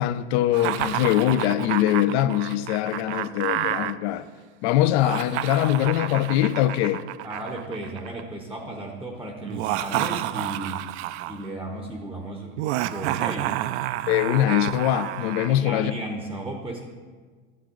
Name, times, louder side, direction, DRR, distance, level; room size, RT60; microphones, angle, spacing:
voice 1, 0.0-4.3 4.6-7.0 14.1-15.9, left 13 dB, 60° left, 0.6 m, -22 dB
Laughter, 0.5-3.9 4.9-8.2 9.4-11.5 12.6-15.5, right 14 dB, 65° right, 0.5 m, -30 dB
voice 2, 7.2-10.9 11.3-12.6 12.9-13.6 15.5-16.9, right 1 dB, 5° right, 0.8 m, -34 dB
12.0 x 7.4 x 3.8 m
supercardioid pair, 125°, 38 cm